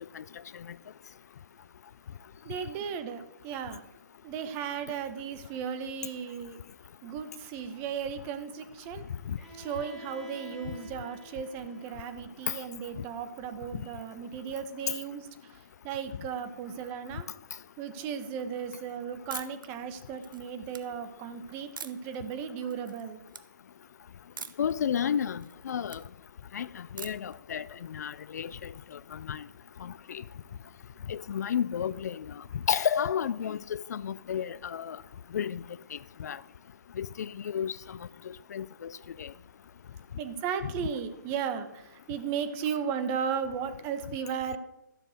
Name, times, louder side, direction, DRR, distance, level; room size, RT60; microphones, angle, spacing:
voice 1, 2.4-3.8 4.2-6.6 7.0-9.0 9.6-17.3 17.8-23.2 40.2-44.6, right 7 dB, 20° right, 1.0 m, -35 dB
Bowed string instrument, 9.4-13.2, equal, ahead, 3.8 m, -49 dB
sound 1, 19.3-19.7 20.1-20.8 21.8-22.2 22.6-23.0 23.3-23.4 24.4-24.7 25.1-26.0 27.0-27.4, right 5 dB, 85° right, 1.3 m, -43 dB
voice 2, 24.6-26.0 26.5-29.4 29.8-30.2 31.1-32.3 32.7-35.0 35.3-35.6 35.9-36.4 37.0-38.0 38.3-38.9 39.2-39.3 40.6-40.7, left 8 dB, 55° left, 0.4 m, -32 dB
14.0 x 7.5 x 6.6 m
hypercardioid pair, 155°, 11 cm